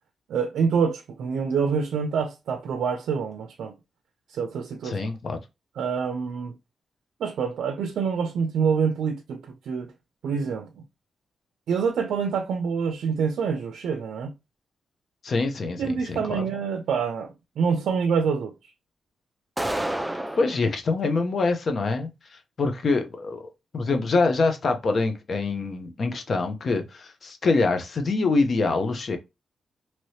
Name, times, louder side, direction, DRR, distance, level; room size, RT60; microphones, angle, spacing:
voice 1, 0.3-3.8 4.3-5.1 5.8-6.5 7.2-9.9 10.2-10.8 11.7-14.3 15.8-18.5, right 6 dB, 90° right, 0.4 m, -26 dB
voice 2, 4.8-5.4 15.2-16.4 20.3-22.1 22.6-23.4 23.7-29.2, left 3 dB, 50° left, 0.7 m, -25 dB
sound 1, 19.6-20.6, right 1 dB, 5° right, 0.4 m, -29 dB
3.0 x 2.8 x 3.1 m
cardioid pair, 100°, 0 cm